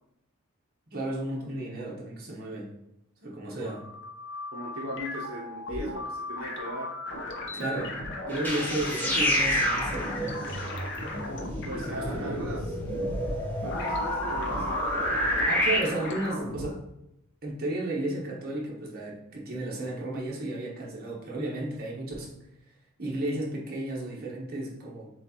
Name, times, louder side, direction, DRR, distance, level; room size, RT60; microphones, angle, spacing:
voice 1, 0.9-2.7 3.2-3.8 7.5-8.0 8.3-10.4 11.8-12.5 15.5-16.8 17.4-22.3 23.0-25.1, right 1 dB, 45° right, -3 dB, 1.0 m, -33 dB
sound 1, 3.5-16.7, left 2 dB, 55° left, 0.7 m, -37 dB
voice 2, 4.5-6.9 11.7-12.7 13.6-14.8, equal, 70° right, -3 dB, 0.6 m, -38 dB
sound 2, 8.3-15.8, equal, 10° left, 0.8 m, -29 dB
7.3 x 2.4 x 2.8 m, 0.84 s
head